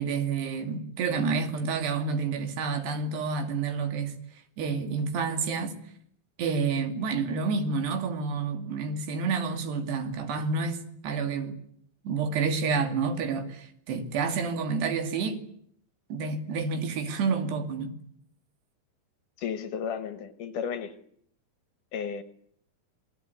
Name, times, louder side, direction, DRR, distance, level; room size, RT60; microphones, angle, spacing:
voice 1, 0.0-4.1 4.6-5.8 6.4-11.6 12.0-15.4 16.1-17.9, right 5 dB, 85° right, 4.6 m, -29 dB
voice 2, 19.4-21.0 21.9-22.2, left 7 dB, 65° left, 2.4 m, -33 dB
27.5 x 20.0 x 9.6 m
omnidirectional pair, 4.6 m